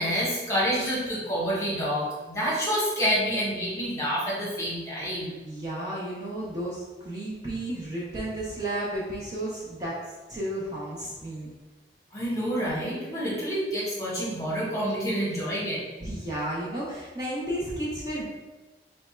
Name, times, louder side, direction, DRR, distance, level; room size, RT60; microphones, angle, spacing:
voice 1, 0.0-5.3 12.1-15.8, equal, 20° left, -7 dB, 1.1 m, -28 dB
voice 2, 5.4-10.0 10.3-11.5 16.0-18.2, right 1 dB, 20° right, -7 dB, 0.6 m, -33 dB
3.4 x 2.2 x 4.3 m, 1.2 s
head